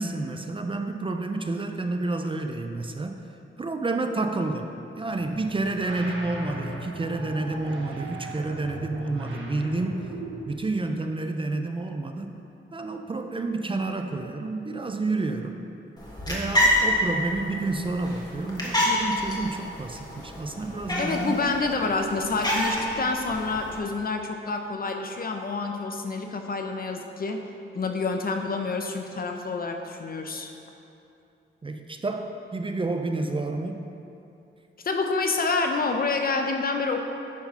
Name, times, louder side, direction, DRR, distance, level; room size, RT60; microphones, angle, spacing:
voice 1, 0.0-3.2 3.6-10.1 10.5-12.3 12.7-15.7 16.3-21.3 31.6-33.8, right 2 dB, 25° right, 5 dB, 0.4 m, -29 dB
sound 1, 5.1-10.6, right 1 dB, 70° right, 1.1 m, -38 dB
sound 2, 16.0-23.8, left 1 dB, 20° left, 1.3 m, -28 dB
voice 2, 21.0-27.5 27.7-30.5 34.8-37.0, left 3 dB, 45° left, 4 dB, 0.7 m, -28 dB
9.4 x 4.6 x 5.7 m, 2.7 s
wide cardioid pair, 160°, 21 cm